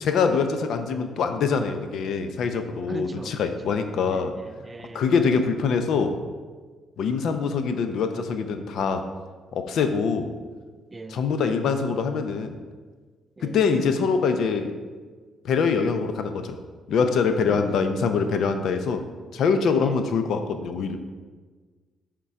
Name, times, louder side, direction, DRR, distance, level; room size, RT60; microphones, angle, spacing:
voice 1, 0.0-4.3 4.9-6.2 7.0-9.1 9.5-10.3 11.1-12.6 13.4-14.8 15.4-16.6 16.9-19.1 19.3-21.0, left 5 dB, 70° left, 8 dB, 0.6 m, -24 dB
voice 2, 2.9-5.1 10.9-11.2 13.4-13.6 17.5-17.6 19.8-20.0, right 2 dB, 25° right, 9 dB, 0.4 m, -41 dB
6.9 x 3.8 x 4.8 m, 1.4 s
cardioid pair, 90°, 0 cm